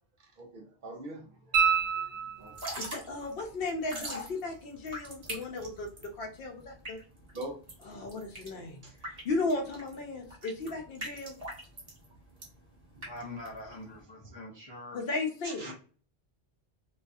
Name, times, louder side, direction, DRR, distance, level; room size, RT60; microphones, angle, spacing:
voice 1, 0.2-2.7 7.3-7.6 8.8-8.9 12.9-13.1 15.4-15.7, right 2 dB, 55° right, 0.6 m, -44 dB
sound 1, 1.5-2.9 5.7-5.8, right 7 dB, 85° right, 0.8 m, -28 dB
Drip / Trickle dribble, 2.4-14.0, right 1 dB, 40° right, 1.0 m, -43 dB
voice 2, 2.8-7.0 7.9-11.4 14.9-15.7, left 3 dB, 65° left, 0.7 m, -35 dB
voice 3, 13.1-15.0 15.6-15.7, left 2 dB, 35° left, 0.4 m, -44 dB
2.5 x 2.3 x 2.3 m
omnidirectional pair, 1.1 m